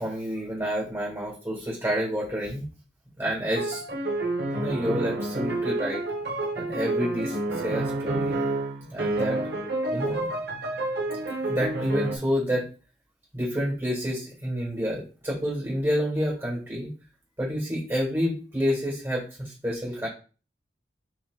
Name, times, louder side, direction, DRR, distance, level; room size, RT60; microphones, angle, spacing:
voice 1, 0.0-2.7 3.2-3.8 4.5-6.0 6.5-8.4 8.9-9.4 9.9-10.3 11.5-12.7 13.3-16.9 17.4-20.1, equal, 15° right, -4 dB, 1.6 m, -29 dB
sound 1, 3.6-12.2, right 2 dB, 60° right, 1.0 m, -29 dB
7.5 x 3.0 x 2.3 m, 0.35 s
head